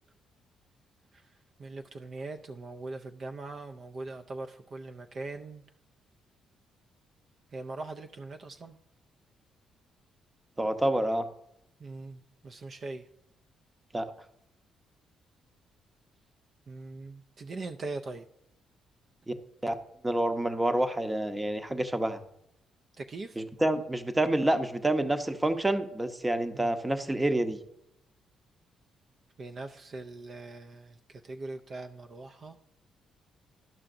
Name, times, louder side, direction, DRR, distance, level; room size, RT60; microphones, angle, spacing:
voice 1, 1.6-5.6 7.5-8.8 11.8-13.0 16.7-18.3 23.0-23.4 26.5-26.7 29.4-32.6, right 3 dB, 45° right, 5 dB, 0.4 m, -41 dB
voice 2, 10.6-11.3 13.9-14.1 19.3-19.4 19.6-19.7 20.0-22.2 23.4-27.6, right 1 dB, 15° right, 8 dB, 0.7 m, -28 dB
12.0 x 5.7 x 2.5 m, 0.77 s
cardioid pair, 90°, 0 cm